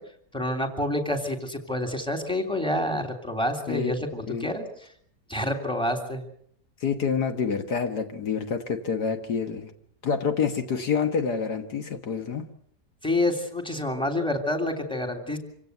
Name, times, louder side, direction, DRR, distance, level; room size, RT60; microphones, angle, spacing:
voice 1, 0.3-4.9 5.3-6.2 13.0-15.4, left 1 dB, 5° left, 4 dB, 3.1 m, -28 dB
voice 2, 6.8-9.7 10.0-12.5, left 6 dB, 70° left, 6 dB, 2.0 m, -27 dB
26.5 x 16.5 x 8.1 m, 0.68 s
omnidirectional pair, 1.8 m